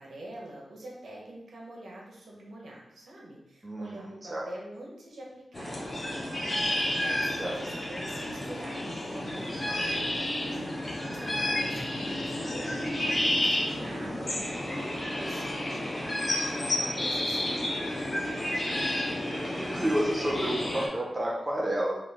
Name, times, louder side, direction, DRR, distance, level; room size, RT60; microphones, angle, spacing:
voice 1, 0.0-17.8, right 1 dB, 75° right, -3 dB, 1.2 m, -46 dB
voice 2, 3.6-4.5 7.4-7.5 11.3-11.4 13.8-14.2 19.3-21.9, right 1 dB, 15° right, -3 dB, 0.7 m, -31 dB
sound 1, 5.5-20.9, left 1 dB, 30° left, 0.8 m, -31 dB
4.4 x 3.2 x 3.6 m, 0.86 s
wide cardioid pair, 175°, 0 cm